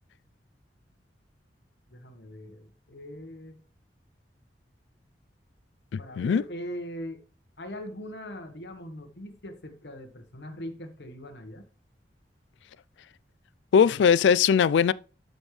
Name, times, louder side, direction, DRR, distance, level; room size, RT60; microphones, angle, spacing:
voice 1, 1.9-3.6 6.0-7.2 7.6-11.7, equal, 70° left, 1.3 m, -41 dB
voice 2, 5.9-6.4 13.7-14.9, left 7 dB, 90° left, 0.3 m, -20 dB
12.5 x 5.3 x 3.2 m
head